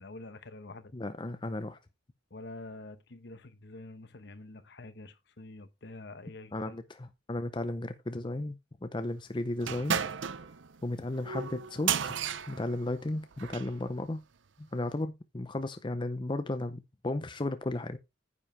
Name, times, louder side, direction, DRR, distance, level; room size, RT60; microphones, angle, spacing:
voice 1, 0.0-0.9 2.3-6.7, left 2 dB, 65° left, 1.0 m, -47 dB
voice 2, 0.9-1.8 6.5-10.0 10.8-12.1 12.5-14.2 14.6-18.0, left 2 dB, 25° left, 0.6 m, -34 dB
sound 1, 9.6-13.8, right 8 dB, 80° right, 0.6 m, -34 dB
9.7 x 7.4 x 3.2 m
head